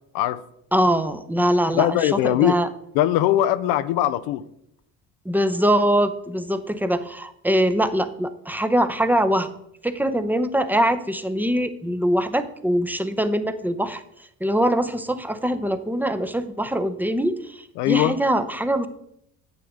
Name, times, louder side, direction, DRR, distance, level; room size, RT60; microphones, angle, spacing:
voice 1, 0.7-2.7 5.2-9.5 9.8-14.0 14.4-18.9, equal, 5° right, 10 dB, 0.7 m, -23 dB
voice 2, 1.7-2.5 3.0-4.4 17.8-18.1, left 13 dB, 80° left, 12 dB, 0.5 m, -20 dB
9.0 x 7.0 x 3.7 m, 0.76 s
supercardioid pair, 65°, 36 cm